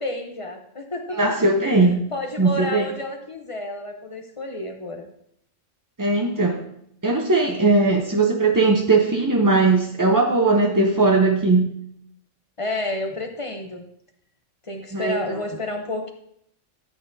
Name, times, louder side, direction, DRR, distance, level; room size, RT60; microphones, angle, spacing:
voice 1, 0.0-1.2 2.1-5.1 12.6-13.8 14.6-16.1, left 1 dB, 30° left, 4 dB, 0.7 m, -30 dB
voice 2, 1.1-2.0 2.4-2.9 6.0-6.6 7.0-11.7 14.9-15.4, right 3 dB, 25° right, 2 dB, 0.4 m, -19 dB
13.0 x 8.5 x 2.7 m, 0.71 s
omnidirectional pair, 1.4 m